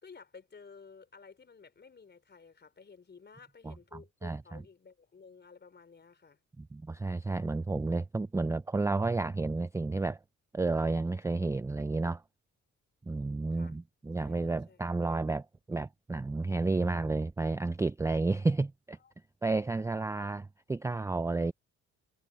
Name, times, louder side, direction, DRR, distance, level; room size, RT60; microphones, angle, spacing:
voice 1, 0.0-6.4 13.5-13.8 14.2-14.8 19.0-19.2 19.4-19.9, left 5 dB, 35° left, 4.2 m, -54 dB
voice 2, 3.6-4.6 6.6-10.2 10.5-12.2 13.1-19.0 19.4-21.5, right 3 dB, 10° right, 0.4 m, -31 dB
cardioid pair, 90°, 30 cm